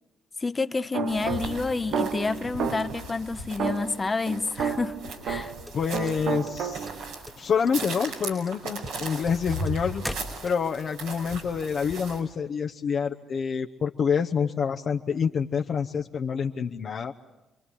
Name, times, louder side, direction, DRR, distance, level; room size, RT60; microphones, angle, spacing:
voice 1, 0.4-5.0 5.3-5.5, left 3 dB, 30° left, 1.1 m, -29 dB
sound 1, 0.9-3.1 3.6-5.7 5.9-7.1, right 7 dB, 70° right, 1.0 m, -31 dB
sound 2, 1.1-12.2, right 2 dB, 85° right, 5.4 m, -38 dB
voice 2, 5.4-6.9 7.4-10.0 10.4-17.1, left 6 dB, 60° left, 1.0 m, -27 dB
sound 3, 5.6-6.9 7.2-7.8 8.1-10.9, equal, 5° left, 1.4 m, -39 dB
29.0 x 23.0 x 8.5 m
supercardioid pair, 55°, 0 cm